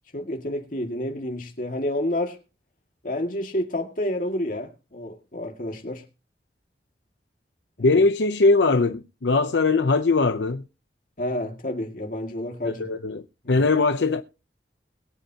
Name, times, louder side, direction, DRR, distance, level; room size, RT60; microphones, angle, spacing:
voice 1, 0.1-2.4 3.0-6.0 7.8-8.0 11.2-12.9 13.4-13.7, left 1 dB, 50° left, 2.2 m, -29 dB
voice 2, 7.8-10.6 12.6-14.2, left 3 dB, 85° left, 0.7 m, -21 dB
22.0 x 7.8 x 2.9 m
head